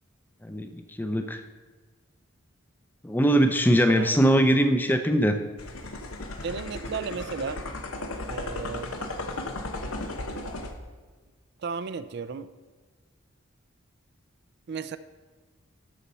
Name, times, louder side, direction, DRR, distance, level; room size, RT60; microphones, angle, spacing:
voice 1, 0.4-1.4 3.0-5.4, equal, 10° left, 7 dB, 0.5 m, -22 dB
sound 1, 5.6-10.7, left 2 dB, 90° left, 1.0 m, -35 dB
voice 2, 6.4-7.6 8.3-9.0 11.6-12.5 14.7-15.0, right 5 dB, 50° right, 13 dB, 0.4 m, -34 dB
13.0 x 4.3 x 5.5 m, 1.4 s
head